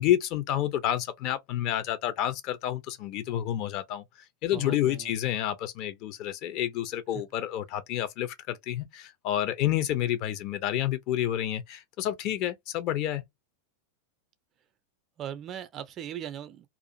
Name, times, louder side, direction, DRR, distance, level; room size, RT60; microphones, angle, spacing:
voice 1, 0.0-4.0 4.4-13.2, left 12 dB, 40° left, 0.5 m, -29 dB
voice 2, 4.5-5.1 15.2-16.7, right 10 dB, 30° right, 0.5 m, -39 dB
2.5 x 2.4 x 2.6 m
figure-of-eight pair, 90°, 0 cm